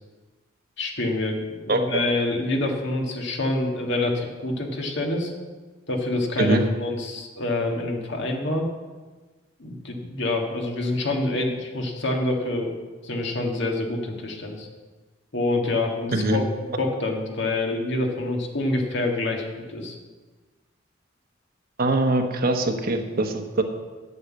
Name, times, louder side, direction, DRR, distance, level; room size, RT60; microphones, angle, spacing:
voice 1, 0.8-5.3 5.9-8.7 9.6-12.8 13.0-14.7 15.3-16.4 16.8-20.0, left 2 dB, 65° left, 2 dB, 1.8 m, -26 dB
voice 2, 1.7-2.0 6.4-6.6 16.1-16.4 21.8-23.6, right 2 dB, 50° right, 5 dB, 1.1 m, -22 dB
9.0 x 8.2 x 7.5 m, 1.3 s
head